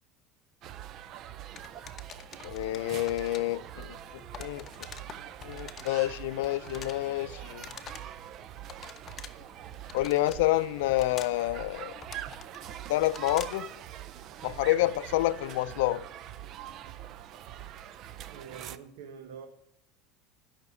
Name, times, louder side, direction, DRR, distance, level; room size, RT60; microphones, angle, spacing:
sound 1, 0.6-18.8, right 11 dB, 50° right, 0.6 m, -44 dB
sound 2, 1.6-13.7, left 7 dB, 30° left, 0.9 m, -48 dB
voice 1, 2.4-4.0 4.4-4.7 5.4-7.6 9.9-11.9 12.9-13.7 14.4-16.1, left 16 dB, 85° left, 0.4 m, -28 dB
voice 2, 18.3-19.5, right 7 dB, 85° right, 1.1 m, -46 dB
12.0 x 5.9 x 8.4 m
supercardioid pair, 130°, 0 cm